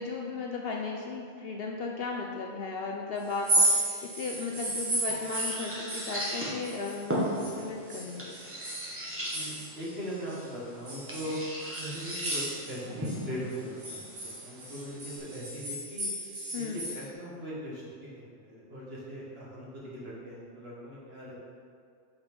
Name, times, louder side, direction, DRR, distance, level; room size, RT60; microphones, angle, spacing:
voice 1, 0.0-8.4 16.5-16.8, left 4 dB, 60° left, 0 dB, 0.7 m, -36 dB
sound 1, 3.3-7.6 7.9-10.4 10.9-13.2 13.5-17.0, right 1 dB, 80° right, 1.8 m, -33 dB
sound 2, 4.2-15.2, equal, 10° right, 1.1 m, -38 dB
voice 2, 9.3-11.4 11.8-14.0 14.4-16.1 16.5-17.8 18.1-21.4, equal, 55° right, -6 dB, 1.8 m, -40 dB
5.8 x 4.3 x 5.1 m, 2.3 s
omnidirectional pair, 1.3 m